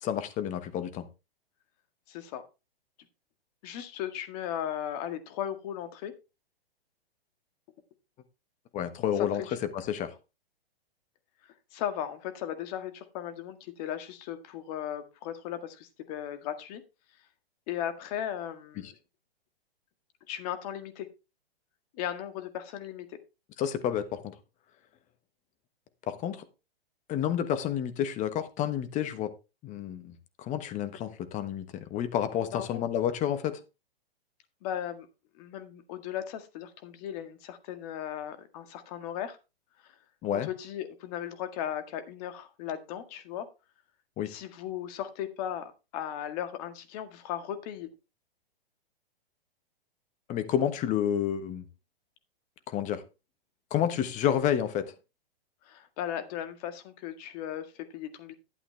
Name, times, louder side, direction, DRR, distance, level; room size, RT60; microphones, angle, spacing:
voice 1, 0.0-1.1 8.7-9.4 9.7-10.1 18.8-18.9 23.6-24.3 26.1-26.4 27.1-29.3 29.6-33.6 40.2-40.5 44.2-44.3 50.3-51.7 52.7-53.0 53.7-54.9, left 10 dB, 25° left, 1.3 m, -30 dB
voice 2, 2.1-2.4 3.6-6.1 9.3-9.6 11.7-16.8 17.7-18.9 20.3-21.1 21.9-23.2 32.5-32.7 34.6-35.1 35.4-39.4 39.8-39.9 40.3-43.5 44.3-47.9 55.6-57.7 57.9-58.3, left 10 dB, 40° left, 1.9 m, -37 dB
12.0 x 8.4 x 3.4 m
hypercardioid pair, 130°, 31 cm